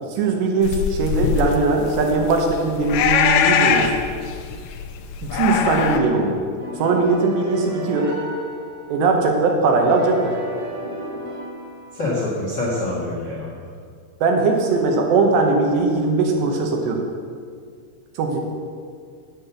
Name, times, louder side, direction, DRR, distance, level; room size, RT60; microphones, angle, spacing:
voice 1, 0.0-3.9 5.2-6.4 6.8-8.1 8.9-10.3 14.2-17.0 18.2-18.4, right 3 dB, 75° right, 2 dB, 3.3 m, -20 dB
sound 1, 0.6-6.0, left 7 dB, 85° left, 2.2 m, -22 dB
sound 2, 6.6-9.2 9.8-12.3, right 1 dB, 35° right, 3.2 m, -34 dB
voice 2, 11.9-13.7, left 2 dB, 45° left, -7 dB, 1.4 m, -26 dB
8.8 x 7.7 x 7.1 m, 2.1 s
omnidirectional pair, 5.0 m